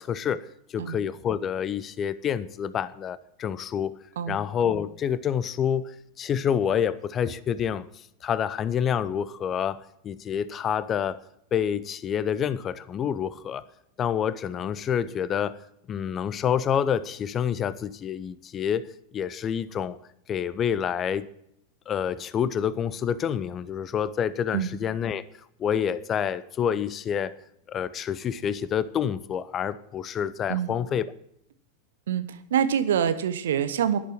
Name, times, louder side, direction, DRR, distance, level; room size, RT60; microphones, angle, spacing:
voice 1, 0.0-4.0 4.3-7.9 8.2-11.2 11.5-13.6 14.0-15.6 15.9-18.9 19.1-20.0 20.3-21.3 21.9-25.2 25.6-27.4 27.7-31.1, left 8 dB, 25° left, 0.7 m, -28 dB
voice 2, 32.1-34.0, right 9 dB, 60° right, 1.1 m, -25 dB
11.5 x 11.0 x 6.0 m
figure-of-eight pair, 90°, 0 cm